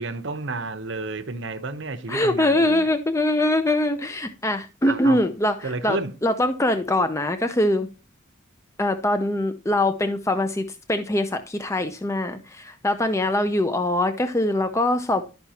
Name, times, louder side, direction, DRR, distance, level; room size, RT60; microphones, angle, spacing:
voice 1, 0.0-2.9 4.8-5.3 5.6-6.2, right 3 dB, 65° right, 0.8 m, -31 dB
voice 2, 2.1-5.5 5.8-7.9 8.8-15.3, left 1 dB, 15° left, 0.6 m, -23 dB
11.5 x 5.8 x 2.9 m
head